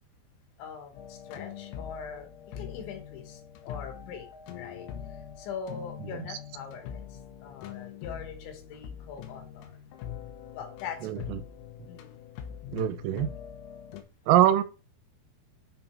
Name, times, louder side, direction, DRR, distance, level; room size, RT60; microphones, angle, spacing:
voice 1, 0.6-2.3 2.6-4.3 4.5-4.9 5.4-7.0 7.4-9.7 10.5-11.4 11.9-12.1, left 6 dB, 70° left, 3.3 m, -42 dB
sound 1, 1.0-14.0, left 9 dB, 90° left, 3.8 m, -43 dB
voice 2, 11.0-11.4 12.7-13.3 14.3-14.6, right 12 dB, 85° right, 3.3 m, -23 dB
9.9 x 3.8 x 4.4 m
omnidirectional pair, 6.0 m